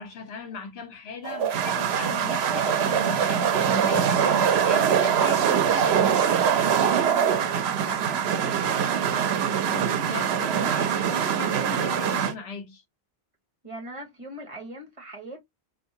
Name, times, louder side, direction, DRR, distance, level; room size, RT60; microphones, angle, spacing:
voice 1, 0.0-6.3 9.7-12.8, left 4 dB, 75° left, 1.1 m, -38 dB
sound 1, 1.2-12.3, right 8 dB, 80° right, 0.9 m, -23 dB
voice 2, 7.0-10.0 10.4-10.8 13.6-15.4, right 1 dB, 30° right, 1.2 m, -41 dB
3.5 x 2.6 x 2.7 m
omnidirectional pair, 1.1 m